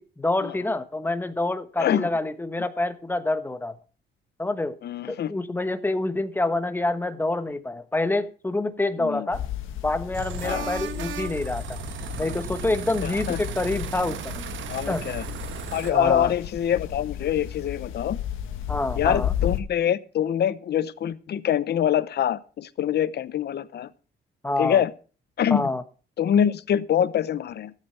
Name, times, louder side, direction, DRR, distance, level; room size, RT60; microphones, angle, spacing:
voice 1, 0.0-3.7 4.4-4.8 5.1-9.4 9.8-11.8 12.2-14.4 14.9-15.0 15.9-16.3 18.7-19.3 24.4-24.8 25.5-25.8, left 2 dB, 10° left, 1.2 m, -27 dB
voice 2, 1.8-2.1 4.8-5.3 9.0-9.3 10.4-10.7 13.0-13.4 14.7-15.2 15.7-18.2 19.0-23.9 24.6-24.9 25.4-25.7 26.2-27.7, left 9 dB, 55° left, 0.8 m, -25 dB
sound 1, 9.3-19.6, left 10 dB, 90° left, 1.5 m, -33 dB
sound 2, 10.1-15.9, right 10 dB, 75° right, 1.2 m, -36 dB
13.5 x 8.2 x 5.8 m
cardioid pair, 90°, 20 cm